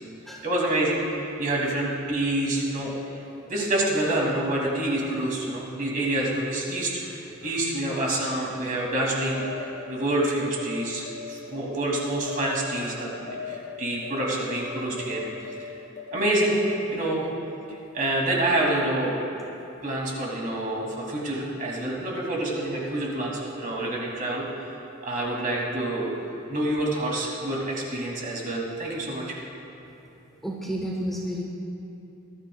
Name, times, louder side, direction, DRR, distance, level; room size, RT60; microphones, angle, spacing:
voice 1, 0.4-3.2 3.5-15.3 15.6-15.7 16.1-16.6 16.9-17.3 17.9-19.4 19.8-24.4 25.0-26.1 26.5-29.4, right 1 dB, 40° right, -3 dB, 2.7 m, -27 dB
sound 1, 8.7-17.7, left 6 dB, 35° left, 1.9 m, -40 dB
voice 2, 30.4-31.4, equal, ahead, -3 dB, 0.9 m, -31 dB
20.5 x 13.5 x 2.4 m, 2.9 s
head